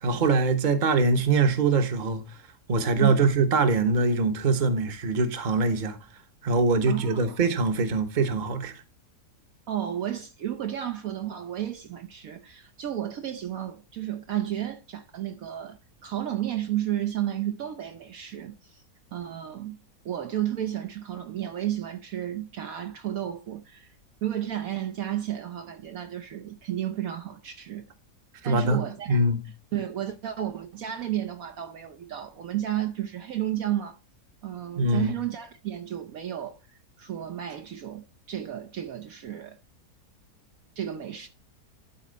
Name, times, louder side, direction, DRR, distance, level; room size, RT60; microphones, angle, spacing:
voice 1, 0.0-2.2 2.7-6.0 6.4-8.8 28.4-28.8 29.1-29.4 34.8-35.1, right 3 dB, 35° right, 1.0 m, -23 dB
voice 2, 3.0-3.3 6.9-7.4 9.7-18.8 19.1-23.9 24.2-27.9 28.4-29.2 29.7-34.0 34.4-36.6 37.0-39.6 40.8-41.3, right 11 dB, 65° right, 1.1 m, -32 dB
12.0 x 4.2 x 3.9 m
omnidirectional pair, 1.7 m